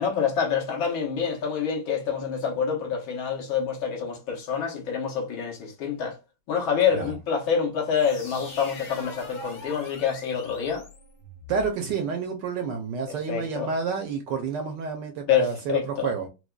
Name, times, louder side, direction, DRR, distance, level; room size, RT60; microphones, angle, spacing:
voice 1, 0.0-6.2 6.5-10.8 13.1-13.7 15.3-16.1, left 7 dB, 75° left, 1.7 m, -27 dB
sound 1, 7.9-11.7, left 2 dB, 45° left, 1.7 m, -42 dB
voice 2, 11.5-16.3, right 5 dB, 75° right, 1.1 m, -29 dB
4.6 x 2.2 x 2.2 m
omnidirectional pair, 2.3 m